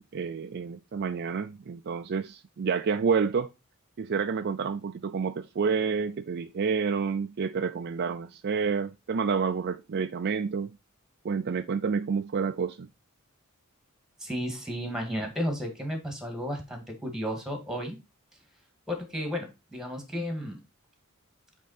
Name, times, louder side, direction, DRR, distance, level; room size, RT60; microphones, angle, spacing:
voice 1, 0.0-3.5 4.0-10.7 11.2-12.9, right 5 dB, 50° right, 0.4 m, -29 dB
voice 2, 14.2-18.0 18.9-20.6, equal, 5° right, 1.8 m, -33 dB
8.4 x 3.6 x 4.1 m
head